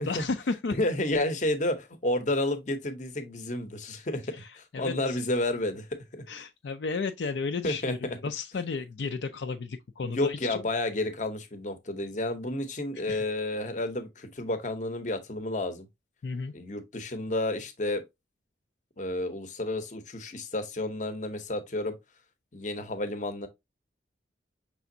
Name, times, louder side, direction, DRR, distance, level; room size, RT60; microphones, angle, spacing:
voice 1, 0.0-0.8 4.3-5.2 6.3-10.6 12.9-13.2 16.2-16.5, left 4 dB, 65° left, 0.4 m, -33 dB
voice 2, 0.8-4.2 4.6-6.3 7.6-8.2 10.0-15.9 16.5-18.0 19.0-21.9 22.5-23.5, left 1 dB, 40° left, 0.8 m, -31 dB
5.9 x 3.4 x 2.7 m
head